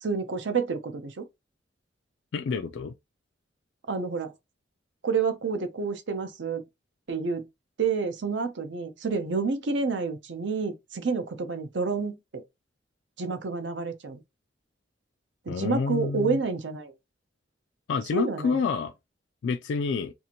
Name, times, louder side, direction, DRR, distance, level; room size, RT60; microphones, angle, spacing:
voice 1, 0.0-1.3 3.9-4.3 5.0-6.6 7.1-7.5 7.8-12.4 13.2-14.2 15.5-16.9 18.1-18.6, right 4 dB, 70° right, 0.6 m, -29 dB
voice 2, 2.3-2.9 15.5-16.4 17.9-18.9 19.4-20.1, left 5 dB, 70° left, 0.3 m, -28 dB
2.7 x 2.5 x 2.8 m
head